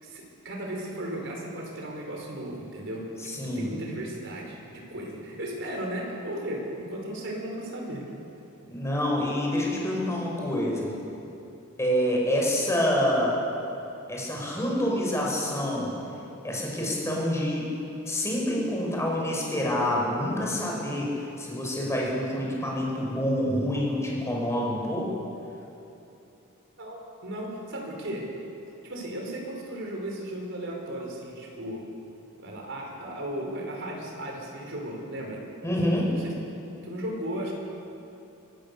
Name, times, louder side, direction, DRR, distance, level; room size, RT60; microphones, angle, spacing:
voice 1, 0.0-3.1 3.3-8.0 26.8-28.3 28.8-31.8 32.4-35.4 36.1-36.3 36.8-37.5, right 1 dB, 60° right, 0 dB, 4.7 m, -35 dB
voice 2, 3.2-3.7 8.7-10.9 11.8-13.4 14.1-15.9 16.4-17.6 18.1-25.1 35.6-36.1, equal, 15° left, -3 dB, 5.4 m, -27 dB
25.5 x 16.5 x 6.9 m, 2.8 s
head